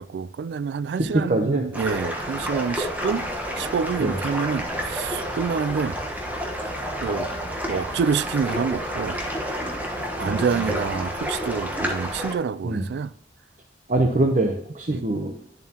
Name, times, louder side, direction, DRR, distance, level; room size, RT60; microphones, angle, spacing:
voice 1, 0.0-3.3 3.6-6.0 7.0-7.3 7.7-9.2 10.2-13.1 14.9-15.0, right 6 dB, 65° right, 0.3 m, -27 dB
voice 2, 1.0-1.6 4.0-4.2 10.2-10.7 12.6-12.8 13.9-15.3, right 2 dB, 45° right, 0.7 m, -24 dB
sound 1, 1.7-12.3, equal, 10° right, 1.1 m, -30 dB
10.5 x 7.2 x 2.9 m
head